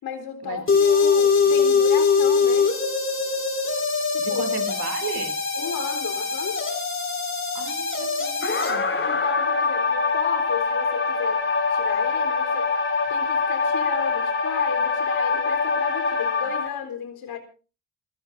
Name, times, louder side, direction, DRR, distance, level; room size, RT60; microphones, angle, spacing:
voice 1, 0.0-2.7 4.1-4.4 5.5-6.6 9.0-11.4 11.7-12.7 13.1-17.4, left 7 dB, 70° left, 6 dB, 4.0 m, -34 dB
sound 1, 0.7-16.7, left 5 dB, 30° left, 5.1 m, -23 dB
voice 2, 4.2-5.4 7.5-9.1, right 7 dB, 70° right, 7 dB, 3.1 m, -35 dB
27.5 x 16.0 x 2.7 m, 0.35 s
cardioid pair, 80°, 38 cm